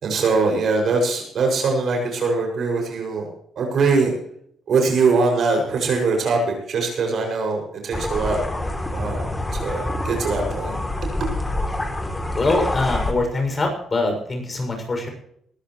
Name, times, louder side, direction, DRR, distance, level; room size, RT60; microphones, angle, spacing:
voice 1, 0.0-3.3 3.6-4.1 4.7-8.4 8.9-10.8, right 4 dB, 60° right, 2 dB, 6.5 m, -22 dB
sound 1, 7.9-13.1, left 1 dB, 15° left, 3.1 m, -26 dB
voice 2, 12.3-15.1, left 2 dB, 30° left, 3 dB, 6.6 m, -23 dB
20.5 x 14.0 x 3.2 m, 0.68 s
cardioid pair, 90°, 0 cm